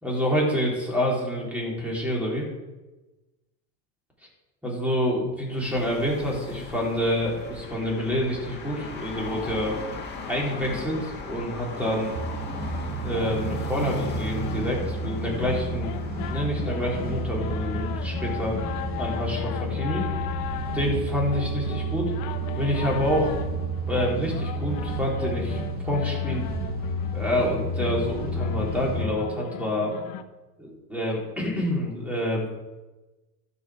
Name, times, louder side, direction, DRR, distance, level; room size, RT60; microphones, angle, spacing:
voice 1, 0.0-2.5 4.6-9.8 10.3-12.1 13.0-18.6 19.0-20.0 20.7-22.1 22.6-23.3 23.9-26.5 27.1-29.9 30.6-32.5, equal, 5° right, -3 dB, 3.1 m, -27 dB
sound 1, 5.5-18.8, left 2 dB, 20° left, 2.0 m, -38 dB
sound 2, 12.1-29.1, right 1 dB, 20° right, 0.7 m, -31 dB
sound 3, 13.1-30.2, left 10 dB, 45° left, 0.9 m, -37 dB
12.0 x 5.6 x 4.7 m, 1.1 s
supercardioid pair, 130°, 46 cm